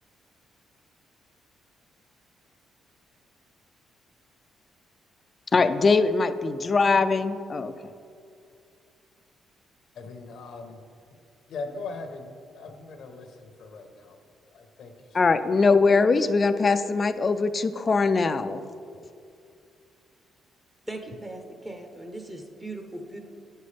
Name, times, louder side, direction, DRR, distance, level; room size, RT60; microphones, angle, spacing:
voice 1, 5.5-7.7 15.1-18.6, left 4 dB, 35° left, 11 dB, 0.3 m, -22 dB
voice 2, 9.9-10.8 11.1-11.2 11.5-14.2 14.5-15.5, left 3 dB, 70° left, 5 dB, 0.8 m, -40 dB
voice 3, 20.9-23.2, right 2 dB, 15° right, 4 dB, 0.7 m, -39 dB
9.3 x 5.4 x 3.3 m, 2.4 s
cardioid pair, 90°, 0 cm